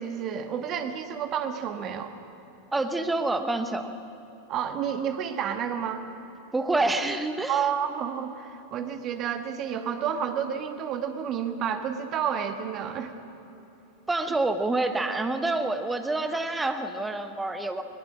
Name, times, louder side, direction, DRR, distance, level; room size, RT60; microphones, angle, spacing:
voice 1, 0.0-2.1 4.5-6.0 7.5-13.1, right 8 dB, 35° right, 7 dB, 1.6 m, -30 dB
voice 2, 2.7-3.9 6.5-7.7 14.1-17.8, right 2 dB, 10° right, 8 dB, 1.3 m, -27 dB
21.0 x 20.0 x 7.5 m, 3.0 s
figure-of-eight pair, 90°, 0 cm